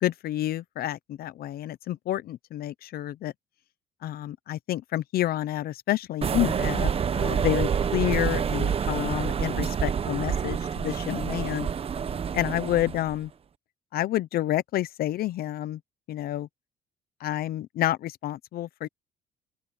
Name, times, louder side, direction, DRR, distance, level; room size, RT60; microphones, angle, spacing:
voice 1, 0.0-3.3 4.0-11.7 12.3-13.3 13.9-15.8 16.1-16.5 17.2-18.9, left 13 dB, 65° left, 0.8 m, -29 dB
sound 1, 6.2-13.2, right 7 dB, 35° right, 1.0 m, -27 dB
open air
cardioid pair, 110°, 17 cm